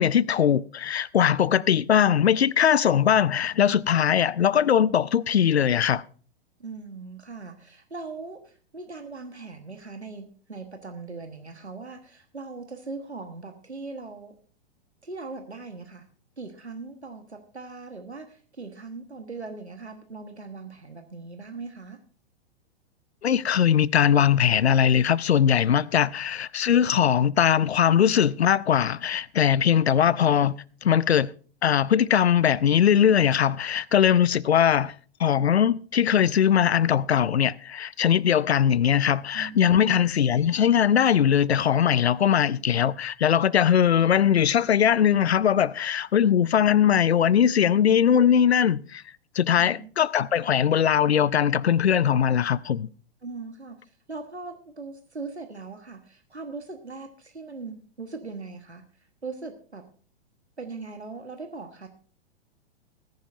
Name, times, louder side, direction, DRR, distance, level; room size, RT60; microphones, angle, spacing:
voice 1, 0.0-6.0 23.2-30.5 30.8-31.3 31.6-34.9 35.2-49.0 49.4-52.9, left 9 dB, 75° left, 0.5 m, -21 dB
voice 2, 6.6-14.3 15.0-16.1 16.4-22.0 30.0-30.2 39.3-40.0 49.5-49.9 53.2-58.8 59.2-59.8 60.6-61.9, right 3 dB, 85° right, 1.3 m, -40 dB
19.5 x 10.5 x 2.6 m
figure-of-eight pair, 105°, 33 cm